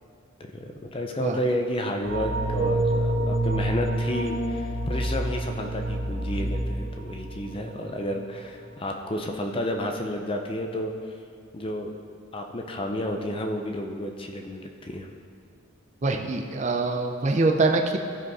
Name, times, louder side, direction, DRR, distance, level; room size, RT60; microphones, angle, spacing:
voice 1, 0.5-11.2 11.5-11.9 12.3-15.1, equal, 25° left, 3 dB, 0.5 m, -31 dB
sound 1, 2.0-8.0 8.3-8.5, right 1 dB, 70° right, 2.0 m, -28 dB
voice 2, 16.0-18.0, right 3 dB, 35° right, 3 dB, 0.5 m, -24 dB
15.0 x 5.0 x 4.7 m, 2.3 s
head